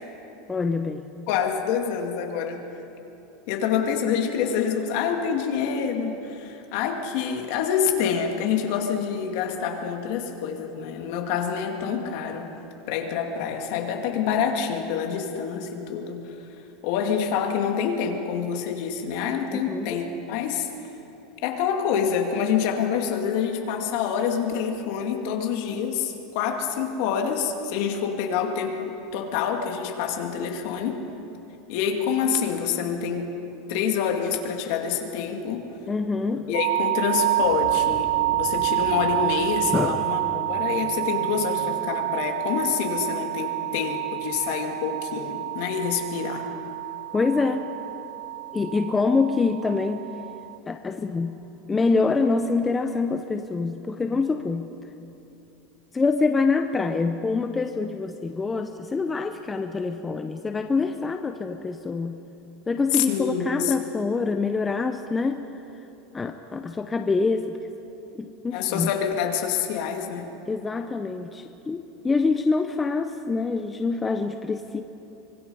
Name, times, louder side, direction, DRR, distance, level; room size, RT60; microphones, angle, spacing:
voice 1, 0.5-1.0 19.5-20.0 35.9-36.6 39.7-40.0 47.1-47.7 48.5-50.1 50.7-51.4 51.7-54.7 55.9-62.2 62.7-65.4 66.1-67.6 68.1-68.9 70.5-74.8, left 4 dB, 10° left, 7 dB, 0.6 m, -25 dB
voice 2, 1.3-2.6 3.5-12.5 12.9-16.4 16.8-20.7 21.4-31.0 31.7-33.3 33.7-35.7 36.5-38.1 38.3-40.2 40.5-46.5 62.9-63.7 68.5-70.3, left 7 dB, 55° left, 3 dB, 2.3 m, -27 dB
sound 1, 36.5-50.6, right 18 dB, 85° right, 0.9 m, -28 dB
sound 2, 37.4-50.8, right 3 dB, 55° right, 2.7 m, -44 dB
25.0 x 21.5 x 5.5 m, 3.0 s
supercardioid pair, 165°, 0 cm